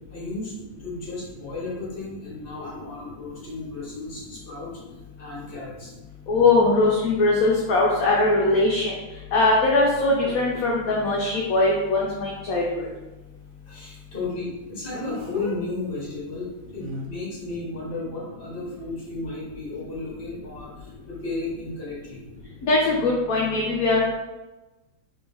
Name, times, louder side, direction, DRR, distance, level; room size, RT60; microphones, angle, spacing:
voice 1, 0.1-0.5 0.8-4.7 5.2-5.9 13.7-22.2, left 3 dB, 30° left, -6 dB, 1.6 m, -34 dB
voice 2, 6.3-8.9 9.3-12.9 22.6-24.1, left 2 dB, 60° left, -3 dB, 1.0 m, -21 dB
Speech, 9.6-9.7 14.9-15.6 16.8-17.0, right 1 dB, 50° right, 0.6 m, -34 dB
3.9 x 3.5 x 3.4 m, 1.1 s
omnidirectional pair, 2.0 m